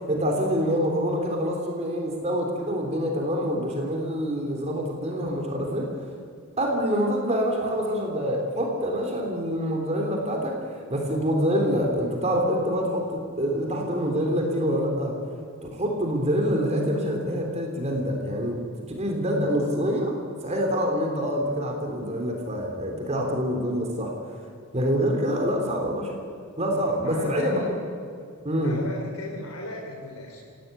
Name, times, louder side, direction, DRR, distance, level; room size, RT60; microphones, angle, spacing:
voice 1, 0.1-5.9 6.6-15.1 15.7-18.6 19.0-20.2 20.4-24.1 24.7-26.1 26.6-27.6 28.4-28.8, equal, 30° right, 2 dB, 3.5 m, -26 dB
voice 2, 26.9-27.7 28.6-30.4, left 1 dB, 75° left, -1 dB, 3.8 m, -36 dB
28.5 x 17.0 x 9.2 m, 2.6 s
head